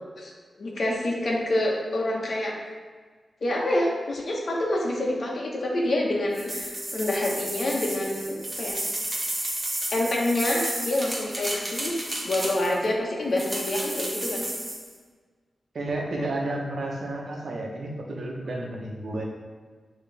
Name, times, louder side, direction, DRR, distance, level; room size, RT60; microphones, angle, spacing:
voice 1, 0.6-2.5 3.4-8.8 9.9-14.4 16.2-16.3, left 1 dB, 60° left, -2 dB, 1.3 m, -27 dB
sound 1, 6.3-12.9 13.4-14.9, right 1 dB, 20° right, 1.1 m, -32 dB
voice 2, 15.7-19.2, right 2 dB, 65° right, -1 dB, 1.0 m, -31 dB
8.8 x 3.3 x 3.5 m, 1.5 s
wide cardioid pair, 95°, 0 cm